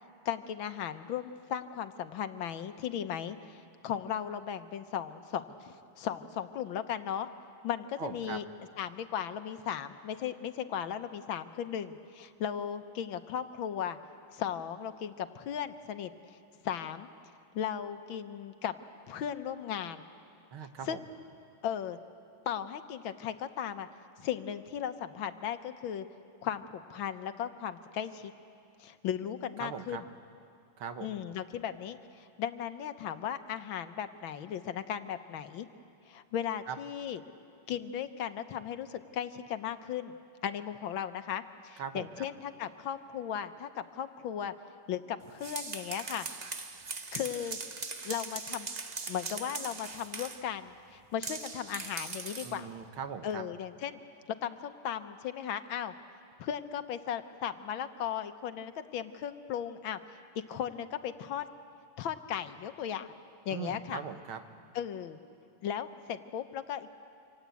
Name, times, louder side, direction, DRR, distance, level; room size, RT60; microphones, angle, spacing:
voice 1, 0.2-3.6 3.8-7.3 7.6-8.4 8.8-14.0 14.3-16.1 16.6-17.1 17.5-18.7 19.1-20.0 20.8-21.0 21.6-22.0 22.4-23.9 24.2-26.1 26.4-28.3 28.8-30.0 31.0-35.7 36.1-37.2 37.7-40.2 40.4-44.5 44.9-46.3 47.1-47.6 48.0-48.7 49.1-52.7 53.2-54.0 54.3-55.9 56.4-60.0 60.3-61.5 62.0-63.1 63.4-64.0 64.7-65.2 65.6-66.9, left 9 dB, 70° left, 10 dB, 1.7 m, -36 dB
voice 2, 8.0-8.4 20.5-21.0 29.6-30.0 30.8-31.2 36.7-36.8 41.8-42.3 52.4-53.4 63.5-64.4, right 7 dB, 80° right, 8 dB, 2.1 m, -40 dB
sound 1, 45.2-50.5 51.2-52.6, right 4 dB, 40° right, 0.6 m, -40 dB
27.0 x 26.0 x 8.3 m, 2.5 s
omnidirectional pair, 2.3 m